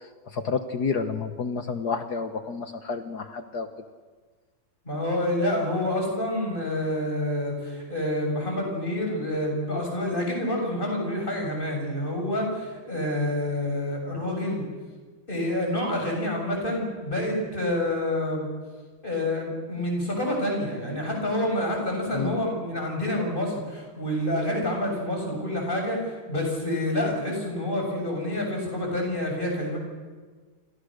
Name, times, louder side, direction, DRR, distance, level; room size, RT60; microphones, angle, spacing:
voice 1, 0.3-3.7 22.1-22.4, left 5 dB, 55° left, 8 dB, 1.6 m, -29 dB
voice 2, 4.9-14.6 15.3-18.5 19.0-29.8, left 1 dB, 25° left, 1 dB, 7.4 m, -28 dB
28.0 x 27.5 x 6.5 m, 1.5 s
omnidirectional pair, 2.2 m